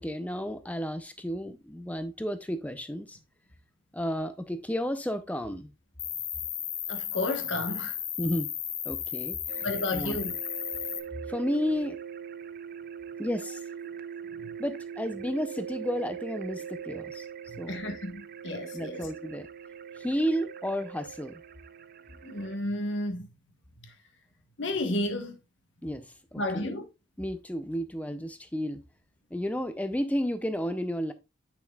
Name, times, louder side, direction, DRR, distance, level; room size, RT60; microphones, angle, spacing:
voice 1, 0.0-3.2 3.9-5.7 8.2-8.5 8.8-9.7 9.9-10.2 11.3-12.0 13.2-13.6 14.6-17.3 17.6-17.8 18.7-19.5 20.0-21.4 25.8-26.1 26.3-26.7 27.2-28.8 29.3-31.1, equal, 5° left, 0.5 m, -32 dB
Cricket, 6.0-11.0, left 10 dB, 40° left, 0.8 m, -34 dB
voice 2, 6.9-8.0 9.6-10.3 14.4-14.5 17.5-19.1 22.2-23.3 23.8-23.9 24.6-25.4 26.4-26.8, left 1 dB, 65° left, 1.2 m, -32 dB
sound 1, 9.5-22.6, right 7 dB, 45° right, 0.4 m, -41 dB
8.7 x 5.9 x 2.3 m
head